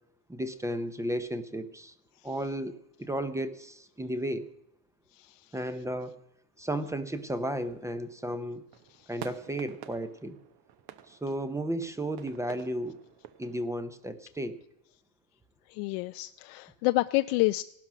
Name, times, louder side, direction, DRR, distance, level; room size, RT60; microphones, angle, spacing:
voice 1, 0.3-1.9 2.2-4.5 5.5-6.2 6.6-8.6 9.1-10.4 11.1-13.0 13.4-14.6, right 1 dB, 5° right, 11 dB, 0.6 m, -34 dB
voice 2, 5.1-5.5 8.9-9.1 15.7-17.6, left 20 dB, 85° left, 9 dB, 0.6 m, -29 dB
sound 1, 7.1-14.1, right 11 dB, 50° right, 1.0 m, -50 dB
17.5 x 12.0 x 6.1 m, 0.82 s
cardioid pair, 160°, 46 cm